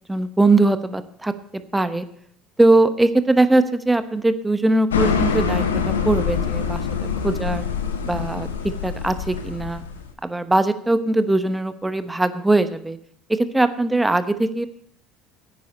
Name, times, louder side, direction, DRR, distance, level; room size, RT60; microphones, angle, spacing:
voice 1, 0.1-2.0 2.6-6.8 7.2-7.7 8.0-9.8 10.2-13.0 13.3-14.7, right 2 dB, 10° right, 11 dB, 1.0 m, -20 dB
sound 1, 4.9-10.1, left 6 dB, 85° left, 1.1 m, -25 dB
15.0 x 9.5 x 4.3 m, 0.64 s
hypercardioid pair, 65°, 0 cm